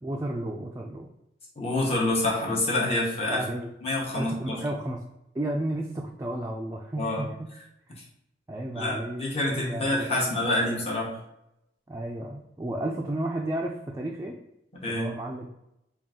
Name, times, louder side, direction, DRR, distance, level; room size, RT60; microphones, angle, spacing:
voice 1, 0.0-1.1 3.3-3.7 4.1-5.0 5.3-7.5 7.9-8.0 8.5-10.5 11.9-14.4 14.9-15.5, right 1 dB, 15° right, 0 dB, 0.3 m, -33 dB
voice 2, 1.6-3.4 3.8-4.6 7.0-7.2 8.7-11.2 14.8-15.1, left 2 dB, 35° left, -3 dB, 0.9 m, -27 dB
3.7 x 2.4 x 3.6 m, 0.85 s
head